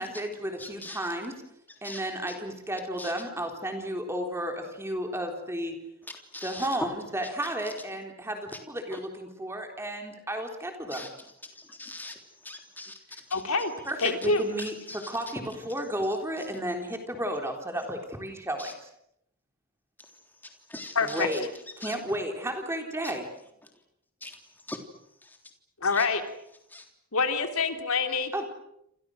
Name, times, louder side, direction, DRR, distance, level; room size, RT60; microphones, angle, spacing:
voice 1, 0.0-1.3 1.8-5.7 6.4-11.1 13.9-18.9 21.0-21.5 21.8-23.2 28.3-28.4, right 1 dB, 10° right, 4 dB, 3.6 m, -33 dB
voice 2, 0.6-1.1 1.8-2.0 3.0-3.1 6.3-6.7 7.4-7.5 8.9-9.0 10.9-11.1 11.5-12.1 12.4-13.0 13.3-13.4 14.9-15.1 18.6-18.7 20.7-21.3 21.8-21.9 24.2-24.4 24.7-24.8 25.9-26.0 26.7-26.8, left 2 dB, 10° left, 4 dB, 3.4 m, -41 dB
voice 3, 13.3-13.7 14.0-14.4 20.9-21.3 25.8-26.2 27.1-28.4, left 4 dB, 75° left, 6 dB, 3.3 m, -26 dB
28.5 x 28.0 x 6.5 m, 0.78 s
head